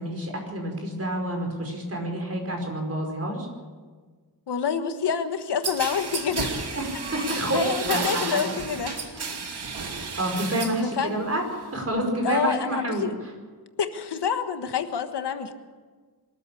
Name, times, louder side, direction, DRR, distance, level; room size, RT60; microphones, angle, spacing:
voice 1, 0.0-3.5 6.7-8.4 9.2-9.4 10.2-13.3, right 1 dB, 35° right, 2 dB, 5.2 m, -29 dB
voice 2, 4.5-6.8 7.2-9.2 10.7-11.2 12.2-13.1 13.8-15.5, left 7 dB, 85° left, 8 dB, 1.5 m, -28 dB
sound 1, 5.6-10.8 11.2-11.8, right 4 dB, 75° right, 2.5 m, -32 dB
23.5 x 13.5 x 8.5 m, 1.5 s
wide cardioid pair, 150°, 40 cm